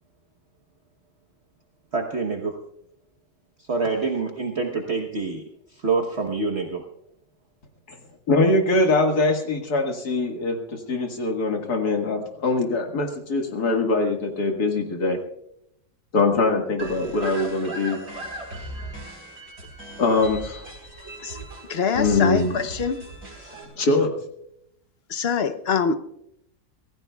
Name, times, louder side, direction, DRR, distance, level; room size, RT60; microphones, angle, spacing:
voice 1, 1.9-2.6 3.6-6.8, right 4 dB, 45° right, 1.3 m, -26 dB
voice 2, 8.3-15.2 16.1-18.0 20.0-20.6 21.9-22.6 23.8-24.1, left 2 dB, 75° left, 2.3 m, -22 dB
sound 1, 16.8-23.6, right 1 dB, 60° right, 4.6 m, -38 dB
voice 3, 21.7-23.1 25.1-25.9, left 6 dB, 50° left, 0.9 m, -24 dB
25.0 x 16.0 x 2.3 m
omnidirectional pair, 1.7 m